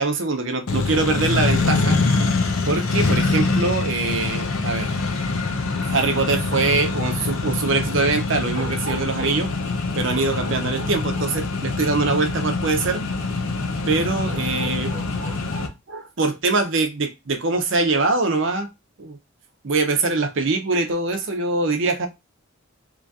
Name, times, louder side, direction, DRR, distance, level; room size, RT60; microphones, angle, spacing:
voice 1, 0.0-2.3 2.7-4.9 5.9-9.5 10.0-13.0 13.9-18.7 19.0-19.2 19.6-22.1, right 3 dB, 60° right, 0.6 m, -23 dB
Accelerating revving vroom, 0.7-15.7, left 3 dB, 75° left, 0.6 m, -24 dB
3.0 x 2.7 x 3.5 m
head